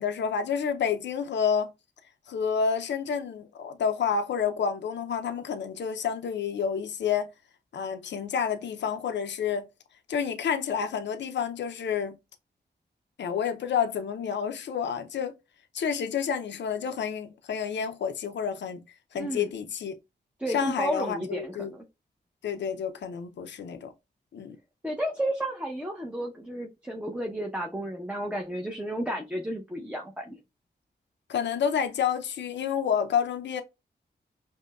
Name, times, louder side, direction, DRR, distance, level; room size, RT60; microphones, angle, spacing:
voice 1, 0.0-1.7 2.3-7.3 7.7-9.7 10.1-12.2 13.2-15.3 15.7-18.8 19.1-19.9 20.5-21.7 22.4-23.9 24.3-24.6 31.3-33.6, left 7 dB, 80° left, 0.5 m, -29 dB
voice 2, 19.1-19.5 20.4-21.8 24.8-30.4, right 1 dB, 5° right, 0.7 m, -32 dB
5.1 x 2.2 x 2.3 m
cardioid pair, 60°, 18 cm